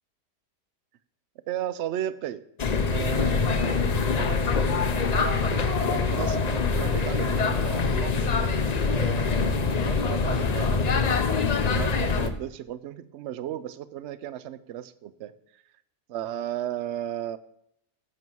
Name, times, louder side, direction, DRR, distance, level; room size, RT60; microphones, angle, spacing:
voice 1, 1.5-2.4 2.9-8.3 8.9-15.3 16.1-17.4, right 12 dB, 70° right, 15 dB, 0.6 m, -35 dB
sound 1, 2.6-12.3, left 4 dB, 80° left, 0.3 m, -24 dB
11.0 x 7.7 x 4.6 m, 0.76 s
omnidirectional pair, 1.8 m